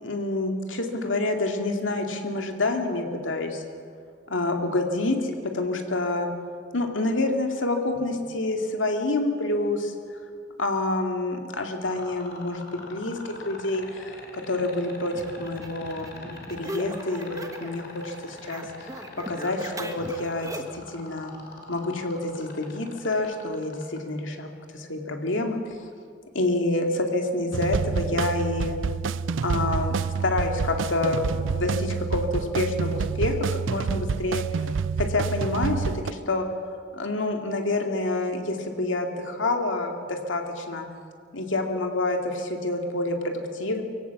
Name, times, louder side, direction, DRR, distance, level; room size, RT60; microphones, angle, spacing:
voice 1, 0.0-3.6 4.3-6.3 6.7-9.9 10.6-13.2 13.4-18.9 19.1-21.3 21.7-25.6 26.3-28.8 29.4-33.3 33.7-34.4 35.0-36.5 36.9-40.9 41.3-43.8, left 2 dB, 80° left, 3 dB, 2.4 m, -28 dB
sound 1, 11.8-24.0 25.6-25.8, left 3 dB, 60° left, 3.5 m, -43 dB
sound 2, 15.1-17.8 18.1-20.9, right 1 dB, 20° right, 1.4 m, -39 dB
sound 3, 27.5-36.1, right 5 dB, 75° right, 0.4 m, -28 dB
24.5 x 16.5 x 7.2 m, 2.2 s
head